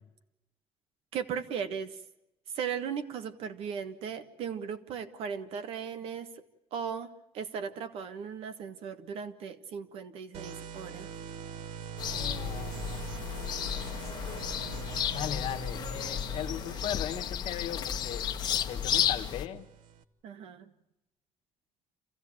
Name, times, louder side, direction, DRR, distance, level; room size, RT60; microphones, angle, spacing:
voice 1, 1.1-2.0 2.5-6.3 6.7-7.1 7.3-11.1 20.2-20.7, right 7 dB, 70° right, 1.5 m, -37 dB
sound 1, 10.3-20.0, right 8 dB, 85° right, 1.1 m, -43 dB
sound 2, 12.0-19.5, left 9 dB, 45° left, 1.2 m, -33 dB
voice 2, 12.1-13.1 15.1-19.7, left 11 dB, 70° left, 1.4 m, -38 dB
27.5 x 15.5 x 8.7 m
cardioid pair, 175°, 10 cm